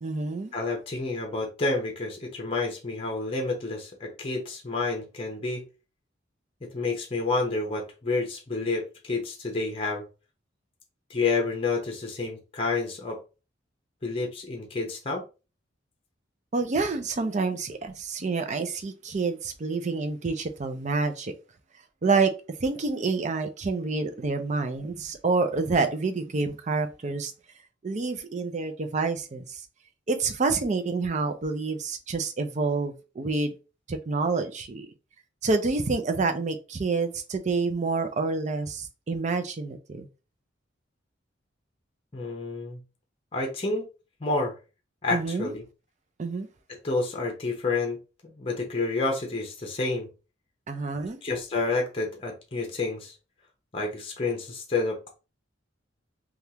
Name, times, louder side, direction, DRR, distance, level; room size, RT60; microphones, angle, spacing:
voice 1, 0.0-0.5 16.5-21.3 22.0-22.3 22.6-27.3 27.8-29.6 30.1-33.5 33.9-34.9 35.4-40.1 45.1-45.5 46.2-46.5 50.7-51.2, right 4 dB, 40° right, 0.5 m, -28 dB
voice 2, 0.5-5.6 6.6-10.0 11.1-13.2 14.0-15.2 42.1-42.8 43.3-43.9 44.2-44.5 45.0-45.6 46.8-48.0 48.2-50.1 51.2-53.1 53.7-55.1, left 3 dB, 30° left, 0.7 m, -29 dB
3.4 x 2.3 x 2.8 m
head